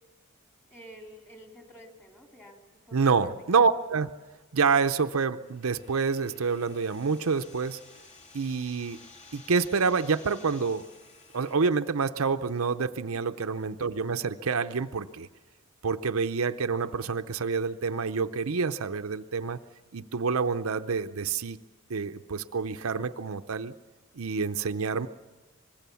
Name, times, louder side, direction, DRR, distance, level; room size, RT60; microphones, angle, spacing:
voice 1, 0.7-3.4, equal, 10° left, 2 dB, 3.2 m, -50 dB
voice 2, 2.9-4.1 4.5-7.8 8.3-9.0 9.3-10.9 11.3-15.3 15.8-19.6 19.9-21.6 21.9-23.7 24.1-25.1, right 5 dB, 70° right, 8 dB, 0.7 m, -27 dB
sound 1, 5.4-11.5, left 3 dB, 30° left, 1.9 m, -53 dB
25.0 x 21.5 x 7.0 m, 1.2 s
head